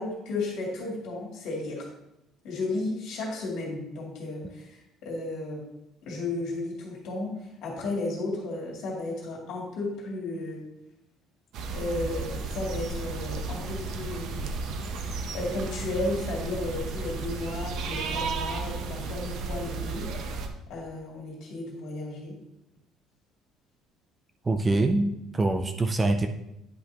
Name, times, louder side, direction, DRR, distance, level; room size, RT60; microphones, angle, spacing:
voice 1, 0.0-1.9 2.4-5.6 6.0-10.6 11.7-14.5 15.3-20.1 20.7-22.3, left 2 dB, 60° left, -3 dB, 2.6 m, -33 dB
sound 1, 11.5-20.5, right 4 dB, 55° right, 0.7 m, -33 dB
voice 2, 24.4-26.3, right 2 dB, 15° right, 7 dB, 0.4 m, -24 dB
9.9 x 5.5 x 2.9 m, 0.88 s
cardioid pair, 175°, 0 cm